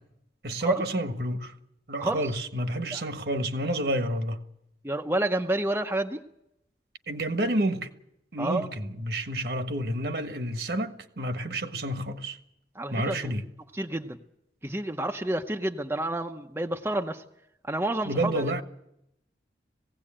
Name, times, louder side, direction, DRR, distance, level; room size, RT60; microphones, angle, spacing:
voice 1, 0.4-1.5 1.9-4.4 7.1-7.9 8.3-12.4 12.9-13.4 18.0-18.6, right 1 dB, 65° right, 1.5 m, -29 dB
voice 2, 4.8-6.2 8.4-8.7 12.7-13.3 13.7-14.2 14.6-17.2 17.7-18.5, right 1 dB, 15° right, 0.8 m, -29 dB
19.0 x 16.5 x 8.8 m
head